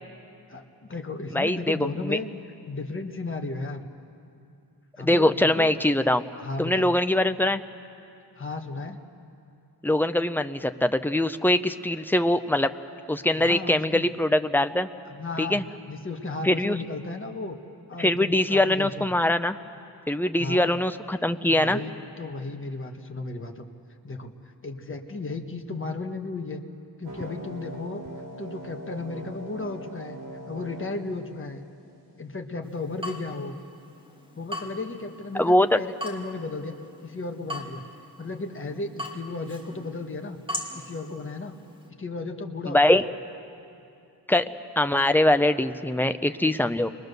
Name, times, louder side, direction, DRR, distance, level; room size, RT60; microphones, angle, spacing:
voice 1, 0.5-2.3 2.7-3.9 5.0-5.7 6.4-6.9 8.4-9.0 13.3-14.1 15.1-15.6 15.9-17.6 17.9-19.1 20.4-20.7 21.4-21.9 22.2-23.7 24.0-24.3 24.6-26.6 27.0-28.0 28.4-30.2 30.5-31.6 32.2-33.5 34.4-36.7 37.0-37.9 38.2-40.4 40.7-41.6 42.0-42.8, left 3 dB, 30° left, 4 dB, 1.4 m, -34 dB
voice 2, 1.3-2.2 5.0-6.2 6.6-7.6 9.8-12.7 13.1-14.9 15.4-15.6 16.4-16.8 18.0-19.6 20.1-21.8 35.3-35.8 42.7-43.0 44.3-44.5 44.8-46.9, left 1 dB, 5° left, 9 dB, 0.5 m, -22 dB
sound 1, 27.0-32.0, right 1 dB, 60° right, 5.1 m, -41 dB
Water tap faucet / Drip, 32.6-41.9, equal, 10° right, 2.4 m, -41 dB
30.0 x 22.5 x 6.7 m, 2.6 s
wide cardioid pair, 170°, 41 cm